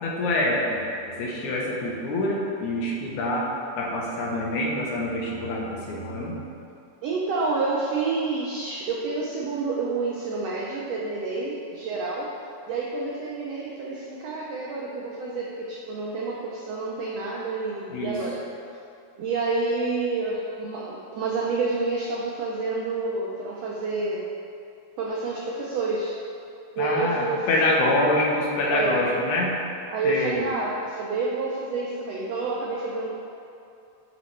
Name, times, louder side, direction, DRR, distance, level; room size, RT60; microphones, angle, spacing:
voice 1, 0.0-3.5 3.8-6.4 17.9-18.2 26.8-29.6 30.0-30.4, left 1 dB, 70° left, -3 dB, 2.2 m, -26 dB
voice 2, 7.0-12.3 12.7-18.4 19.2-24.3 25.0-26.1 26.7-27.8 28.7-29.0 29.9-33.1, right 3 dB, 80° right, -4 dB, 1.4 m, -28 dB
9.9 x 4.1 x 3.2 m, 2.5 s
omnidirectional pair, 3.7 m